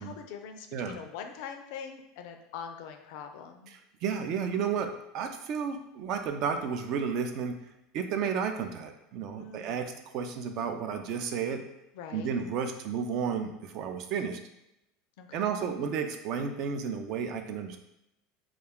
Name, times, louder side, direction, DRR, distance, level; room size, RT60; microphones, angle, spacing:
voice 1, 0.0-3.7 9.3-9.9 11.9-12.4 15.2-15.5, left 7 dB, 70° left, 5 dB, 0.3 m, -43 dB
voice 2, 4.0-7.6 7.9-11.6 12.1-14.4 15.3-17.8, right 6 dB, 55° right, 6 dB, 0.4 m, -32 dB
2.3 x 2.3 x 3.5 m, 0.85 s
hypercardioid pair, 90°, 0 cm